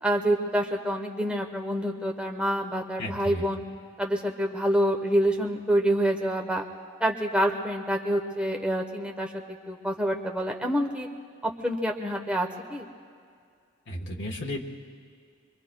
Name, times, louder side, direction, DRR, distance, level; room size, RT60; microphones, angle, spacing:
voice 1, 0.0-3.6 4.0-6.6 7.0-9.3 9.7-11.1 11.4-12.8, right 1 dB, 5° right, 1 dB, 0.9 m, -27 dB
voice 2, 3.0-3.4 13.9-14.6, left 1 dB, 60° left, -1 dB, 1.2 m, -33 dB
26.0 x 24.0 x 2.2 m, 2.2 s
head